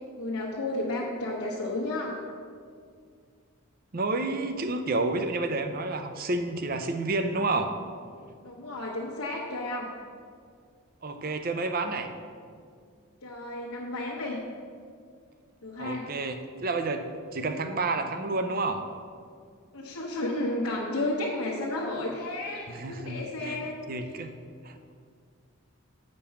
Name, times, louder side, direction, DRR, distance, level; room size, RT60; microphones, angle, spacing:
voice 1, 0.2-2.2 8.4-9.9 13.2-14.4 15.6-16.1 19.7-23.8, left 2 dB, 80° left, -4 dB, 1.1 m, -32 dB
voice 2, 3.9-7.7 11.0-12.1 15.8-17.0 17.3-18.8 22.7-23.6 23.9-24.3 24.6-24.9, right 3 dB, 40° right, 7 dB, 0.5 m, -30 dB
8.3 x 5.3 x 5.8 m, 2.1 s
head